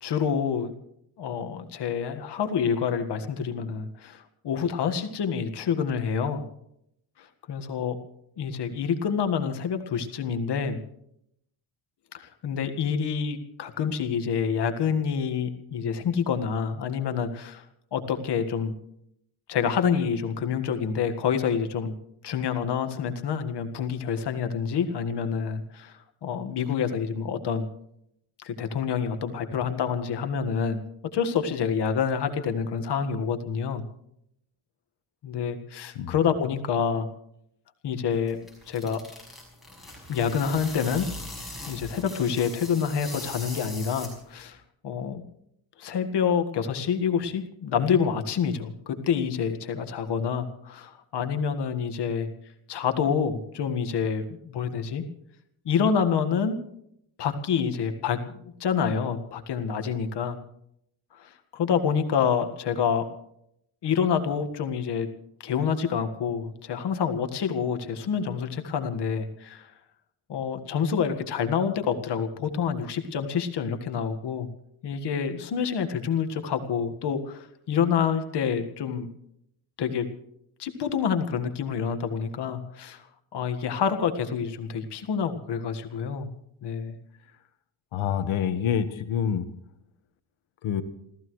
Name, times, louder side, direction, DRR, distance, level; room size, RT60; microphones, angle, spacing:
voice 1, 0.0-0.7 1.2-6.4 7.2-8.0 8.4-10.8 12.1-17.6 17.9-18.7 19.5-21.9 22.2-27.7 28.4-30.8 31.1-33.8 35.2-37.1 37.8-38.4 38.7-39.0 40.1-41.1 41.7-45.2 45.8-52.3 52.7-55.0 55.6-56.6 57.2-60.4 61.2-63.1 63.8-65.1 65.4-69.7 70.3-74.5 74.8-79.1 79.8-80.1 80.6-83.0 83.3-86.3 86.6-86.9, left 7 dB, 55° left, 7 dB, 1.7 m, -27 dB
sound 1, 38.1-44.5, left 1 dB, ahead, 5.9 m, -41 dB
voice 2, 87.9-89.5 90.6-90.8, left 8 dB, 85° left, 10 dB, 1.5 m, -26 dB
28.5 x 15.0 x 3.2 m, 0.74 s
cardioid pair, 180°, 47 cm